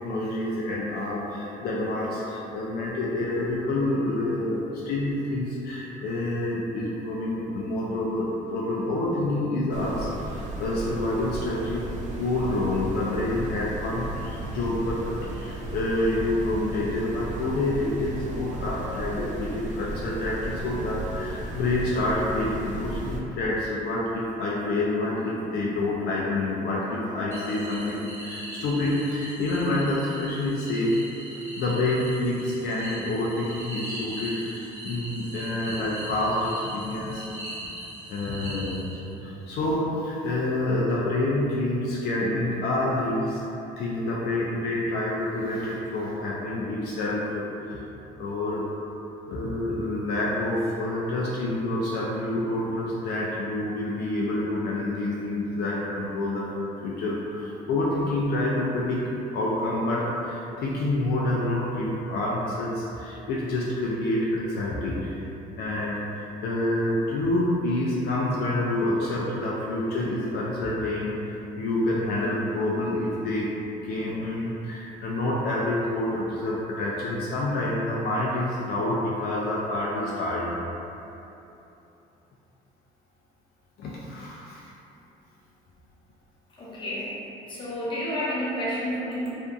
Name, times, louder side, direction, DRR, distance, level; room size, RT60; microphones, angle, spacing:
voice 1, 0.0-11.9 12.2-31.0 31.3-37.3 38.1-38.9 39.2-43.4 43.8-47.4 47.7-47.8 48.2-48.6 49.3-56.5 56.8-65.2 65.6-73.5 73.8-80.5 83.8-84.7, left 1 dB, 70° left, -5 dB, 0.4 m, -28 dB
sound 1, 9.7-23.2, right 2 dB, 45° right, 0.4 m, -35 dB
sound 2, 27.3-39.3, right 1 dB, 15° right, 0.9 m, -40 dB
voice 2, 86.5-87.1 87.5-89.3, equal, 30° left, -8 dB, 0.7 m, -30 dB
2.7 x 2.4 x 2.3 m, 3.0 s
cardioid pair, 110°, 17 cm